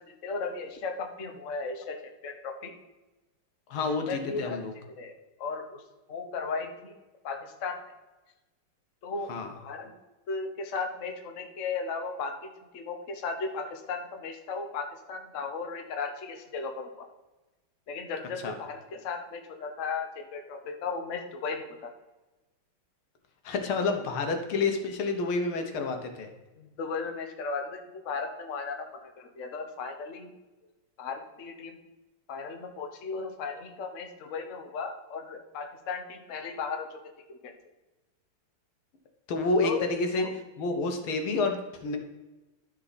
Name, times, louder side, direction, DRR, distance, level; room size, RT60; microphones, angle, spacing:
voice 1, 0.2-2.0 2.2-2.7 4.1-4.6 5.0-5.1 5.4-5.8 6.1-7.0 7.2-7.8 9.0-9.9 10.3-17.1 17.9-21.9 26.6-30.3 31.0-31.8 32.3-37.0 37.4-37.5 39.6-39.8 40.1-40.3, left 4 dB, 45° left, 3 dB, 1.2 m, -35 dB
voice 2, 3.7-4.7 9.3-9.5 18.4-18.5 23.4-26.3 39.3-40.3 40.6-42.0, left 3 dB, 80° left, 5 dB, 2.0 m, -29 dB
13.0 x 4.8 x 4.1 m, 1.1 s
omnidirectional pair, 2.3 m